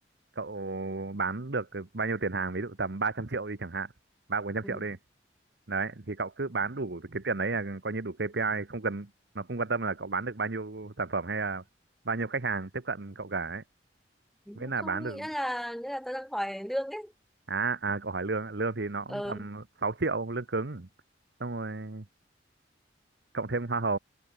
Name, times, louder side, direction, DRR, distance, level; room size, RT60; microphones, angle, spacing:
voice 1, 0.4-3.9 4.3-5.0 5.7-9.1 9.3-11.6 12.0-13.6 14.5-15.3 17.5-20.9 21.4-22.0 23.3-24.0, right 3 dB, 70° right, 1.1 m, -32 dB
voice 2, 14.5-17.1 19.1-19.5, equal, ahead, 3.4 m, -35 dB
head